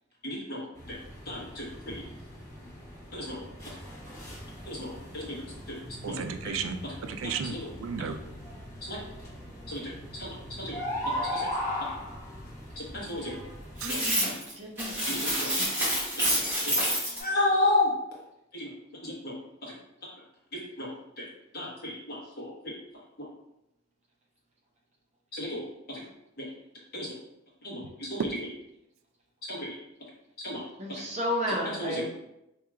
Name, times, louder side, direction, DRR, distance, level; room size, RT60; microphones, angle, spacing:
voice 1, 0.2-1.0 1.3-2.0 3.1-3.4 4.6-5.4 5.7-6.2 7.4-7.6 8.8-9.0 9.7-10.3 10.6-10.8 11.3-11.5 12.8-13.4 13.9-14.4 15.1-15.9 16.2-16.4 16.7-17.9 18.5-18.7 19.0-19.7 20.5-21.3 21.5-22.7 25.3-26.0 26.4-26.5 26.9-27.2 27.6-28.2 29.4-29.8 30.4-30.6 31.5-32.1, left 2 dB, 50° left, -5 dB, 1.1 m, -33 dB
sound 1, 0.7-13.8, left 1 dB, 20° left, 1.2 m, -39 dB
voice 2, 6.0-8.2 13.8-14.0 28.2-28.3, right 5 dB, 85° right, 7 dB, 0.3 m, -34 dB
sound 2, 13.8-14.5 14.8-17.2, equal, 10° right, 1.0 m, -28 dB
voice 3, 13.8-15.8 30.8-32.1, equal, 35° right, -1 dB, 0.6 m, -33 dB
4.4 x 2.8 x 2.4 m, 0.86 s
head